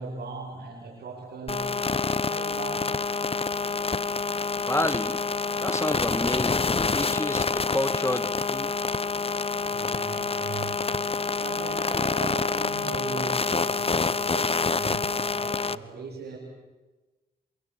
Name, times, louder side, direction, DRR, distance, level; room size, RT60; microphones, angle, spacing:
voice 1, 0.0-1.8 2.2-2.9 9.7-11.0 11.4-16.4, right 4 dB, 85° right, -3 dB, 5.6 m, -38 dB
sound 1, 1.5-15.7, left 4 dB, 35° left, 1.0 m, -27 dB
voice 2, 4.7-5.2 5.6-8.7, left 1 dB, 15° left, 13 dB, 1.9 m, -30 dB
27.0 x 24.5 x 8.3 m, 1.2 s
cardioid pair, 40°, 16 cm